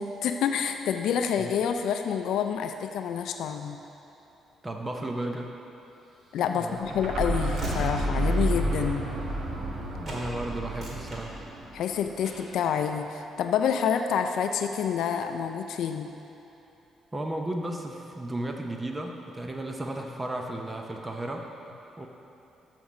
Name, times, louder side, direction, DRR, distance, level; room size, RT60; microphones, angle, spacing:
voice 1, 0.0-3.8 6.3-9.1 11.7-16.1, left 7 dB, 80° left, 6 dB, 0.4 m, -28 dB
voice 2, 4.6-5.5 6.5-7.0 10.0-11.4 17.1-21.5 22.0-22.1, right 1 dB, 20° right, 2 dB, 0.6 m, -34 dB
Train / Slam, 6.2-9.8 10.0-10.3 10.6-11.8 12.2-12.6, right 1 dB, 40° right, 2.0 m, -41 dB
sound 1, 6.8-12.5, right 1 dB, 65° right, 1.1 m, -31 dB
7.1 x 5.9 x 6.2 m, 2.9 s
cardioid pair, 90°, 0 cm